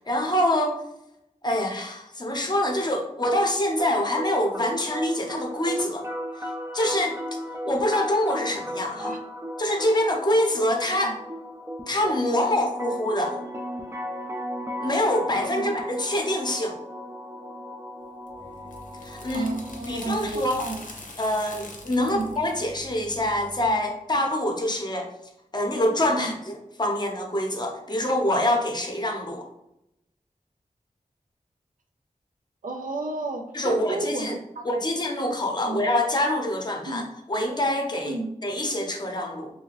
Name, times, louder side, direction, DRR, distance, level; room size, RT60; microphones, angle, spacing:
voice 1, 0.1-0.8 1.4-6.0 6.4-7.2 7.6-9.1 9.6-11.2 11.9-13.4 14.8-16.8 19.0-19.5 19.9-20.6 21.2-25.1 25.5-29.4 33.5-34.3 34.7-37.0 37.3-38.1 38.4-39.5, left 1 dB, 30° left, 2 dB, 0.6 m, -25 dB
sound 1, 3.8-19.8, equal, 20° right, 0.4 m, -36 dB
sound 2, 18.3-23.7, left 1 dB, 75° left, 0.6 m, -43 dB
voice 2, 19.3-20.9 22.0-22.3 26.1-26.3 32.6-34.7 35.6-35.8 36.9-37.0 38.0-38.3, right 3 dB, 80° right, 4 dB, 0.4 m, -32 dB
2.7 x 2.7 x 2.9 m, 0.83 s
wide cardioid pair, 70°, 14 cm